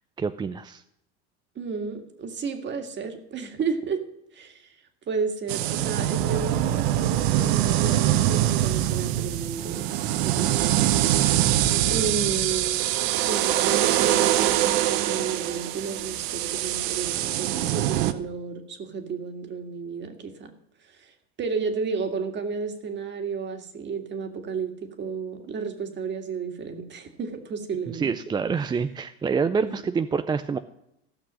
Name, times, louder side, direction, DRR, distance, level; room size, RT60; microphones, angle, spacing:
voice 1, 0.2-0.8 27.9-30.6, right 5 dB, 15° right, 10 dB, 0.4 m, -26 dB
voice 2, 1.6-4.0 4.3-4.7 5.1-9.9 10.2-10.9 11.9-12.9 13.3-20.5 20.8-21.1 21.4-28.2 29.6-29.8, right 5 dB, 35° right, 6 dB, 1.9 m, -32 dB
sound 1, 5.5-18.1, right 13 dB, 65° right, 0.9 m, -24 dB
15.5 x 6.1 x 6.1 m, 0.81 s
supercardioid pair, 105°, 32 cm